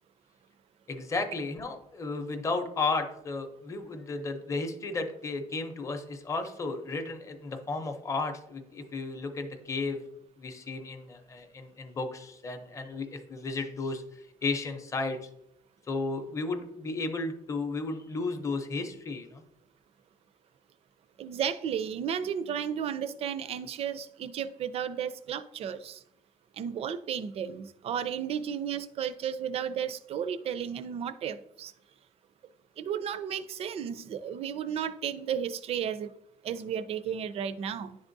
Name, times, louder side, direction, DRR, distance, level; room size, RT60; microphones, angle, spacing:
voice 1, 0.9-10.0 10.4-15.3 15.9-19.4, left 3 dB, 20° left, 5 dB, 0.6 m, -34 dB
voice 2, 21.2-26.0 26.6-31.7 32.8-36.1 36.4-38.0, right 8 dB, 45° right, 12 dB, 0.4 m, -33 dB
10.5 x 3.6 x 2.6 m, 0.79 s
cardioid pair, 170°, 14 cm